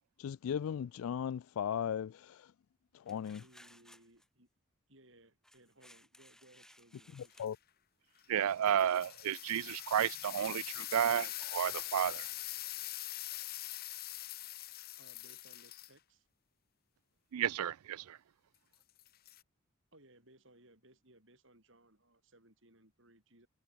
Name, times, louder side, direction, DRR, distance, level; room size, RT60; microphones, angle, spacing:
voice 1, 0.2-2.5 2.9-3.4 7.2-7.6, left 8 dB, 75° left, 0.3 m, -37 dB
sound 1, 3.1-4.3 5.4-7.5, left 1 dB, ahead, 1.9 m, -61 dB
voice 2, 3.4-4.5 4.9-7.5 15.0-16.3 19.9-23.5, right 1 dB, 60° right, 7.6 m, -63 dB
sound 2, 7.3-7.5 8.2-15.9 19.0-19.4, left 15 dB, 45° left, 1.0 m, -43 dB
voice 3, 8.3-12.3 17.3-18.2, right 9 dB, 85° right, 0.4 m, -32 dB
head